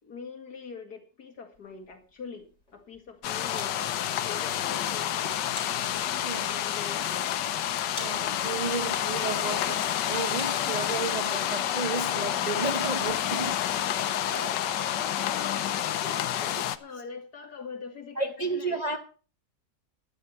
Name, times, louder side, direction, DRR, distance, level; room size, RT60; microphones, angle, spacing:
voice 1, 0.0-5.4 6.5-7.4 10.6-10.8 12.9-13.7 14.1-18.8, left 5 dB, 65° left, 2.6 m, -44 dB
sound 1, 1.5-11.3, left 1 dB, 40° left, 4.7 m, -50 dB
sound 2, 3.2-16.8, left 11 dB, 90° left, 1.4 m, -29 dB
voice 2, 6.2-6.6 8.0-13.6 14.3-14.5 18.2-19.0, right 4 dB, 35° right, 0.7 m, -33 dB
12.0 x 10.0 x 5.6 m
omnidirectional pair, 1.8 m